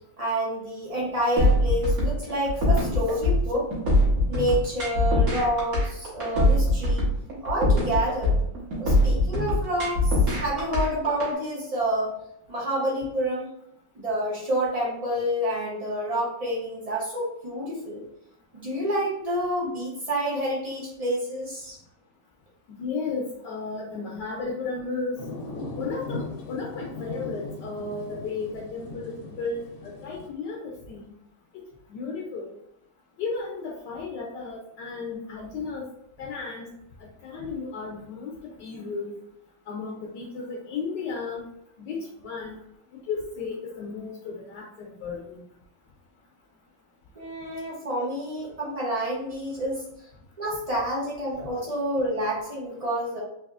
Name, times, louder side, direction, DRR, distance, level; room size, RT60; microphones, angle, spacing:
voice 1, 0.2-3.7 4.3-7.1 7.4-8.4 8.8-12.1 12.5-13.5 13.9-18.0 18.5-21.8 47.1-49.8 50.4-53.2, right 1 dB, 70° right, -5 dB, 0.3 m, -28 dB
sound 1, 1.4-11.3, left 1 dB, 50° right, 1.5 m, -22 dB
voice 2, 22.7-25.2 25.8-31.1 31.5-32.5 33.2-35.9 36.2-36.7 37.0-39.1 39.7-41.4 41.8-42.6 43.1-45.4 51.4-51.5, left 4 dB, 70° left, -1 dB, 1.2 m, -34 dB
sound 2, 25.2-30.3, left 2 dB, 85° left, 1.5 m, -38 dB
4.0 x 2.9 x 2.4 m, 0.77 s
omnidirectional pair, 2.1 m